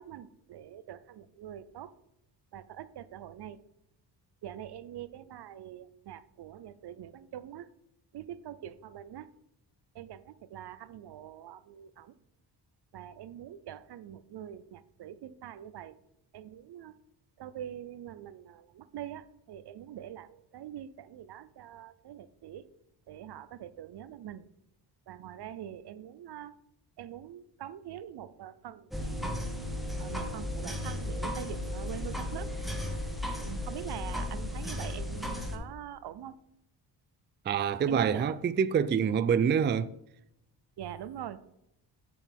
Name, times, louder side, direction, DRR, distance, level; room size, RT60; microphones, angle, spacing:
voice 1, 0.0-1.9 2.5-3.6 4.4-7.7 8.1-9.3 9.9-12.1 12.9-15.9 16.3-16.9 17.4-22.6 23.1-24.4 25.1-26.5 27.0-28.9 30.0-32.5 33.4-36.4 37.9-38.3 40.8-41.4, right 10 dB, 65° right, 0.7 m, -44 dB
sound 1, 28.9-35.6, left 1 dB, ahead, 1.4 m, -35 dB
voice 2, 37.5-39.9, right 7 dB, 25° right, 0.4 m, -26 dB
8.1 x 7.2 x 3.5 m
cardioid pair, 85°, 43 cm